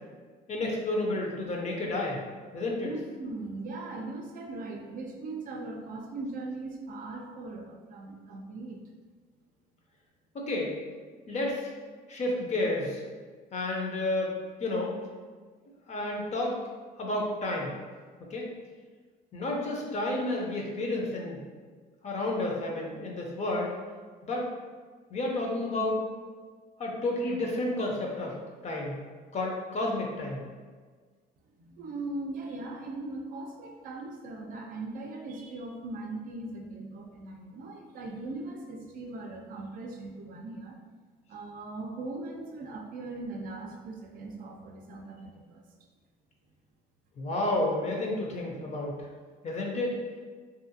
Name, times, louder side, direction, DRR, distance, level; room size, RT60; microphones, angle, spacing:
voice 1, 0.5-2.2 2.5-2.9 10.3-10.8 11.3-11.7 12.1-13.0 13.5-14.3 14.6-15.0 15.9-16.6 17.0-17.7 18.2-18.5 19.3-21.4 22.0-23.7 24.2-24.5 25.1-26.0 26.8-28.4 28.6-29.0 29.3-30.4 47.2-49.0 49.4-50.0, left 2 dB, 40° left, -1 dB, 0.6 m, -31 dB
voice 2, 2.8-8.8 31.6-40.8 41.3-45.6, right 2 dB, 55° right, 2 dB, 0.4 m, -39 dB
2.7 x 2.4 x 2.6 m, 1.5 s
cardioid pair, 110°, 17 cm